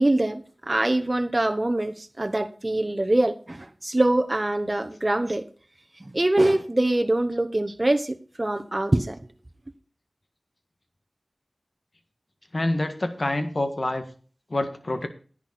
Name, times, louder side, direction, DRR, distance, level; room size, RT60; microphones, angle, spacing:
voice 1, 0.0-5.4 6.0-9.2, right 1 dB, 35° right, 6 dB, 1.0 m, -24 dB
voice 2, 12.5-14.0 14.5-15.1, left 1 dB, 55° left, 7 dB, 1.7 m, -26 dB
10.5 x 9.5 x 4.3 m, 0.40 s
wide cardioid pair, 55°, 0 cm